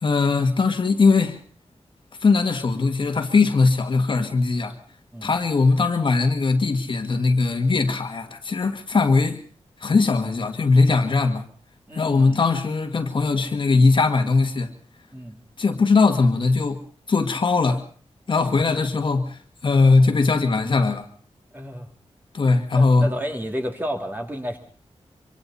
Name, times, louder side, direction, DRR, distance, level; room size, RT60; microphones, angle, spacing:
voice 1, 0.0-1.4 2.2-4.8 5.2-9.4 9.8-11.5 11.9-14.7 15.6-16.8 17.1-17.8 18.3-21.1 22.3-23.1, left 4 dB, 50° left, 6 dB, 1.9 m, -20 dB
voice 2, 11.9-12.4 15.1-15.4 18.5-18.6 21.5-21.9 22.7-24.6, equal, 15° right, 3 dB, 2.8 m, -31 dB
25.0 x 25.0 x 4.2 m, 0.43 s
wide cardioid pair, 165°, 11 cm